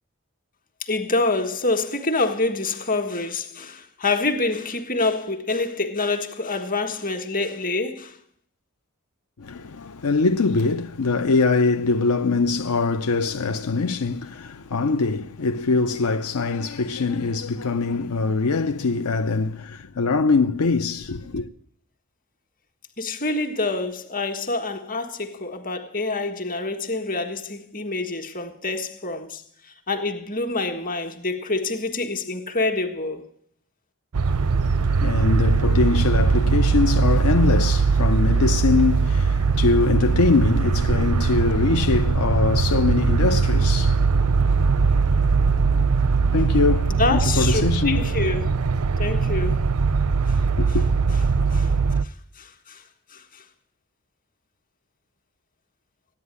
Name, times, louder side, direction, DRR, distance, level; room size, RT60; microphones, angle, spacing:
voice 1, 0.8-8.2 23.0-33.3 46.9-48.5 49.0-49.6 50.3-50.4 50.7-50.8 51.5-51.7 52.0-52.8 53.1-53.4, left 3 dB, 40° left, 1.7 m, -26 dB
voice 2, 9.4-21.5 34.3-45.8 46.1-48.1 50.6-50.8, left 4 dB, 75° left, 0.7 m, -23 dB
sound 1, 34.1-52.0, right 4 dB, 80° right, 0.6 m, -20 dB
14.5 x 10.0 x 9.8 m
head